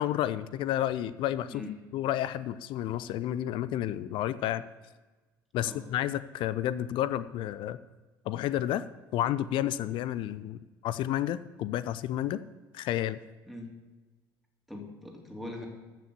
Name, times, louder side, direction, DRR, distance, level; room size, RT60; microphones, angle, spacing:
voice 1, 0.0-1.6 1.9-4.6 5.5-7.8 8.3-8.8 9.1-12.4 12.7-13.2, left 12 dB, 45° left, 15 dB, 0.5 m, -31 dB
voice 2, 14.7-15.7, left 2 dB, ahead, 0 dB, 3.0 m, -41 dB
14.0 x 6.2 x 6.8 m, 1.2 s
figure-of-eight pair, 60°, 11 cm